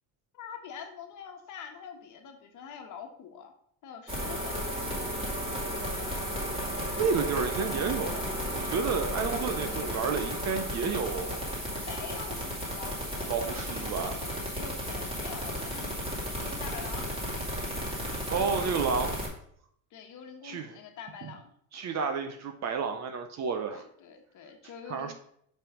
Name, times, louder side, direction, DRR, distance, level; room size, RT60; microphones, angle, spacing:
voice 1, 0.3-3.5 3.8-4.6 11.8-17.1 19.9-21.5 23.7-25.1, left 7 dB, 50° left, 4 dB, 1.4 m, -45 dB
sound 1, 4.1-19.3, equal, 15° right, 2.4 m, -34 dB
voice 2, 7.0-11.5 13.2-14.1 18.3-19.2 20.4-20.8 21.2-21.3 21.7-23.8 24.9-25.1, right 5 dB, 45° right, 7 dB, 0.8 m, -31 dB
5.7 x 5.6 x 4.9 m, 0.66 s
cardioid pair, 140°, 39 cm